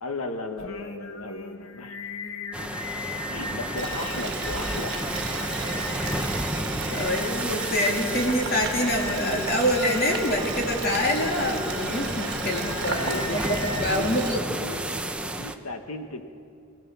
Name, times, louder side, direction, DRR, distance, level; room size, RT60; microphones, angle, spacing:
voice 1, 0.0-2.0 3.3-5.0 13.1-14.1 14.4-14.8 15.4-16.2, left 2 dB, 85° left, 6 dB, 1.5 m, -35 dB
Singing, 0.6-13.9, left 4 dB, 65° left, 1.3 m, -38 dB
sound 1, 2.5-15.6, right 1 dB, 5° right, 0.8 m, -32 dB
Boiling, 3.8-14.4, right 5 dB, 50° right, 1.7 m, -35 dB
voice 2, 6.9-14.5, equal, 45° left, 0 dB, 3.1 m, -26 dB
25.0 x 17.0 x 7.0 m, 2.4 s
head